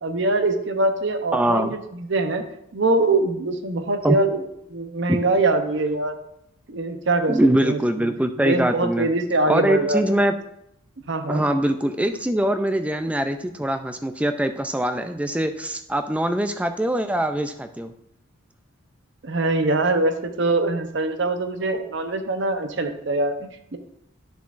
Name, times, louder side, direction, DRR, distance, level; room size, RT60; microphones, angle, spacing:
voice 1, 0.0-2.4 2.7-4.4 4.7-6.2 6.7-8.1 8.4-10.1 11.1-11.4 19.2-23.8, right 2 dB, 60° right, 7 dB, 0.7 m, -23 dB
voice 2, 1.3-1.7 4.0-4.2 5.1-5.2 7.3-9.1 9.5-10.4 11.3-17.9, right 1 dB, 5° right, 8 dB, 0.3 m, -23 dB
9.7 x 6.9 x 2.5 m, 0.79 s
head